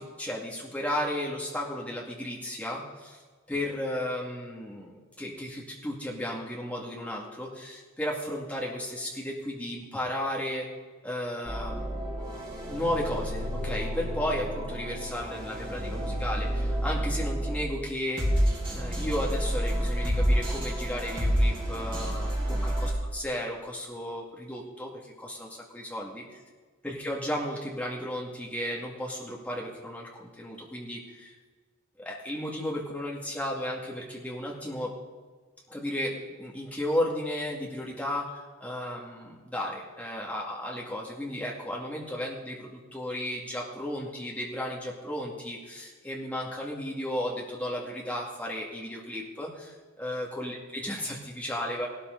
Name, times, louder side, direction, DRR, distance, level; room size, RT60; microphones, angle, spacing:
voice 1, 0.0-3.2 3.5-10.7 11.0-12.1 12.7-18.2 18.7-26.4 26.8-31.3 32.0-34.9 35.7-51.9, left 1 dB, 5° left, -3 dB, 2.3 m, -34 dB
sound 1, 11.4-17.8 18.2-22.9, equal, 25° right, 3.6 m, -29 dB
17.5 x 13.0 x 4.0 m, 1.4 s
head